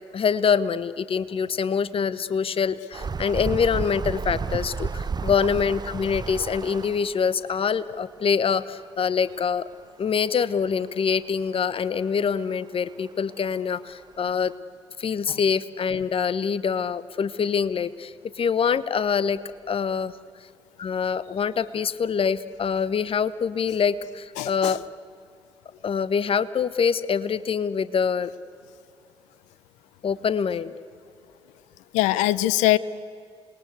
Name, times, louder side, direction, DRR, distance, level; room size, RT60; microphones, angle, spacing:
voice 1, 0.1-9.6 10.0-14.5 15.0-19.4 19.7-20.1 20.8-24.8 25.8-28.3 30.0-30.7, left 6 dB, 45° left, 16 dB, 1.0 m, -25 dB
sound 1, 2.9-7.3 9.2-9.3 9.5-9.6 10.5-10.6 13.1-13.2 13.7-13.8 14.3-14.5, right 5 dB, 35° right, 0.8 m, -31 dB
voice 2, 24.4-24.7 31.9-32.8, left 15 dB, 70° left, 18 dB, 0.6 m, -21 dB
28.5 x 21.0 x 8.2 m, 2.3 s
figure-of-eight pair, 40°, 13 cm